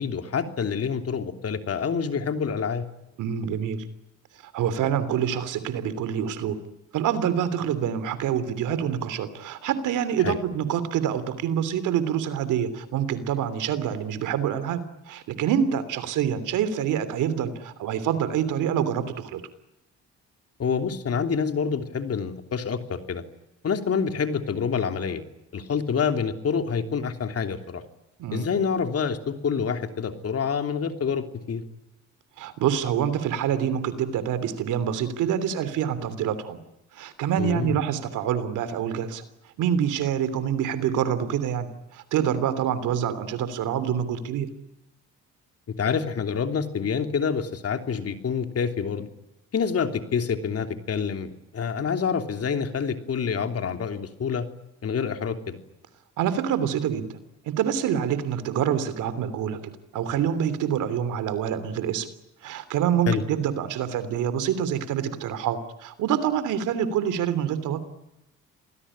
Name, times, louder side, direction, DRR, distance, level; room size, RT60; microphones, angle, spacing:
voice 1, 0.0-2.8 10.2-10.3 20.6-23.2 23.6-25.2 25.5-27.8 28.3-31.6 37.4-37.8 45.8-49.1 49.5-54.4 54.8-55.6 63.1-63.2, left 6 dB, 55° left, 7 dB, 3.2 m, -27 dB
voice 2, 3.2-3.8 4.4-6.6 6.9-19.4 28.2-28.5 32.4-36.6 36.9-39.2 39.6-44.5 56.2-57.2 57.4-62.1 62.4-67.8, right 9 dB, 90° right, 14 dB, 3.1 m, -26 dB
27.5 x 20.0 x 10.0 m, 0.91 s
cardioid pair, 90°, 30 cm